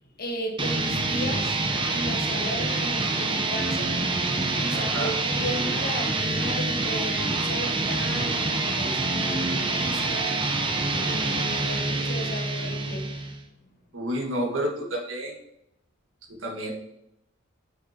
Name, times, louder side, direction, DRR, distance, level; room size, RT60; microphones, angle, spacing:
voice 1, 0.2-1.6 1.9-4.1 4.6-13.2, equal, 50° left, 1.4 m, -35 dB
sound 1, 0.6-13.4, right 3 dB, 25° right, 0.7 m, -26 dB
voice 2, 4.7-5.1 13.9-15.3 16.3-16.7, right 1 dB, 70° right, 1.7 m, -30 dB
7.5 x 6.1 x 2.8 m
head